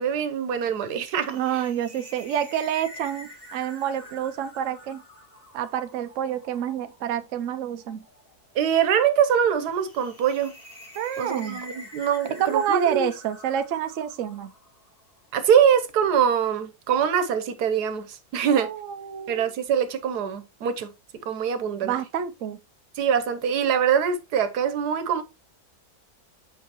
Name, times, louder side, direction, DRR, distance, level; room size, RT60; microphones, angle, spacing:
voice 1, 0.0-1.6 8.5-10.5 11.2-13.1 15.3-18.7 19.3-20.9 21.3-21.9 23.0-25.2, right 8 dB, 90° right, 1.4 m, -23 dB
sound 1, 0.9-15.2, equal, 35° left, 2.8 m, -47 dB
voice 2, 1.3-5.0 5.5-8.0 11.0-11.6 12.4-14.5 18.4-19.5 21.8-22.6, right 9 dB, 60° right, 0.9 m, -28 dB
7.4 x 5.4 x 2.9 m
omnidirectional pair, 1.6 m